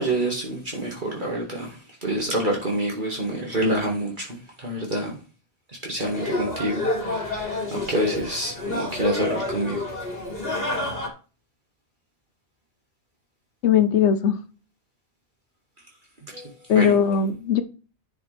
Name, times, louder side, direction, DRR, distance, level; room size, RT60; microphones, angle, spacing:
voice 1, 0.0-5.2 5.8-9.9 16.3-17.0, right 1 dB, 45° right, 2.3 m, -27 dB
sound 1, 6.0-11.1, left 2 dB, 60° left, 3.1 m, -29 dB
voice 2, 13.6-14.4 16.7-17.6, left 8 dB, 90° left, 1.1 m, -19 dB
10.5 x 6.8 x 3.5 m
omnidirectional pair, 1.1 m